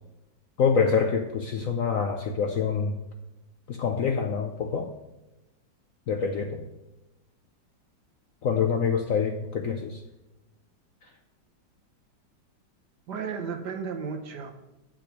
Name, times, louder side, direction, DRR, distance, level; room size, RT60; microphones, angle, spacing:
voice 1, 0.6-3.0 3.7-4.9 6.1-6.7 8.4-10.0, left 6 dB, 60° left, 4 dB, 0.9 m, -26 dB
voice 2, 13.1-14.5, right 6 dB, 60° right, 4 dB, 1.6 m, -33 dB
8.5 x 5.9 x 6.2 m, 0.98 s
omnidirectional pair, 2.1 m